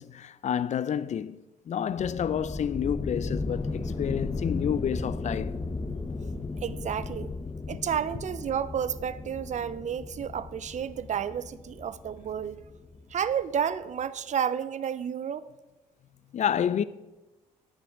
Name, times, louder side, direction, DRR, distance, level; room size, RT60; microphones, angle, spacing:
voice 1, 0.0-1.4 1.7-5.5 16.3-16.8, left 8 dB, 40° left, 0.5 m, -29 dB
sound 1, 2.0-13.4, left 3 dB, 25° left, 0.9 m, -35 dB
voice 2, 6.6-7.3 7.7-12.6 13.1-15.5, right 8 dB, 45° right, 0.5 m, -31 dB
10.0 x 9.8 x 3.7 m
hypercardioid pair, 50°, 17 cm